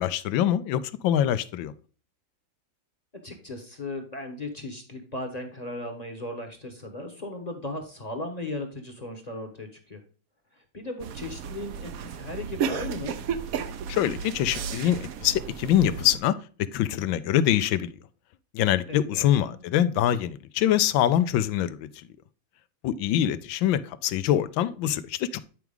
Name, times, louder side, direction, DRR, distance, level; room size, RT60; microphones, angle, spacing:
voice 1, 0.0-1.7 13.9-17.9 18.5-22.1 22.8-25.4, left 11 dB, 90° left, 1.3 m, -24 dB
voice 2, 3.2-10.0 10.5-13.2 18.9-19.6, left 2 dB, 25° left, 1.0 m, -37 dB
sound 1, 11.0-16.2, right 7 dB, 65° right, 0.9 m, -33 dB
9.3 x 4.6 x 3.5 m
omnidirectional pair, 2.1 m